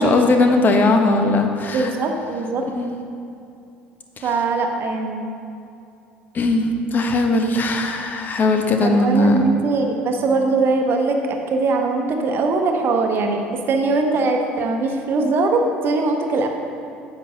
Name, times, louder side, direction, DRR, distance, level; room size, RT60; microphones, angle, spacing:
voice 1, 0.0-1.9 2.8-3.0 6.3-9.4, left 2 dB, 35° left, 4 dB, 0.9 m, -18 dB
voice 2, 1.7-2.6 4.2-5.3 8.8-16.5, right 3 dB, 40° right, 4 dB, 0.9 m, -21 dB
9.4 x 7.9 x 2.8 m, 2.6 s
figure-of-eight pair, 65°, 6 cm